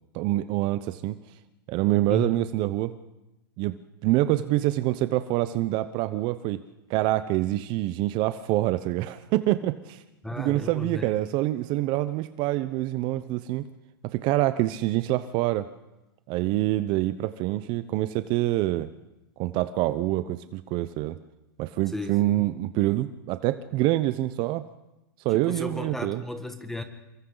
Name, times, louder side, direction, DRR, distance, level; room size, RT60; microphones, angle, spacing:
voice 1, 0.1-1.2 1.7-2.9 3.6-6.6 6.9-10.0 10.4-13.7 14.1-15.7 16.3-18.9 19.4-21.1 21.6-24.7 25.2-26.2, right 16 dB, 40° right, 12 dB, 0.8 m, -26 dB
voice 2, 10.2-11.3 21.9-22.5 25.3-26.8, left 2 dB, 5° left, 7 dB, 1.9 m, -35 dB
28.5 x 23.5 x 4.0 m, 0.96 s
hypercardioid pair, 125°, 12 cm